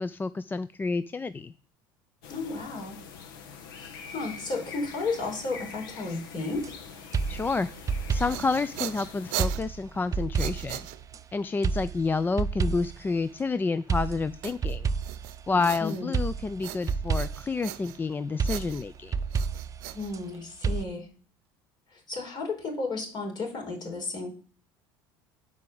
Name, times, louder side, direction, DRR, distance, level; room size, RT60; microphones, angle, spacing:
voice 1, 0.0-1.5 7.3-7.7 8.1-10.8 11.3-14.9 15.5-19.2, left 4 dB, 20° left, 15 dB, 0.4 m, -29 dB
sound 1, 2.2-9.5, left 6 dB, 85° left, 1.5 m, -44 dB
voice 2, 2.3-3.0 3.8-6.8 15.5-16.2 19.9-21.1 21.9-24.3, left 3 dB, 40° left, 1 dB, 4.5 m, -33 dB
sound 2, 6.5-6.7 7.1-8.6 9.4-11.2 11.6-13.1 13.9-15.7 16.1-17.6 18.4-20.2 20.6-20.8, right 5 dB, 30° right, 0.6 m, -30 dB
sound 3, 8.0-11.4 14.4-16.3 16.6-18.1 18.4-20.7, right 16 dB, 75° right, 0.7 m, -39 dB
9.4 x 4.8 x 7.0 m, 0.40 s
supercardioid pair, 95°, 11 cm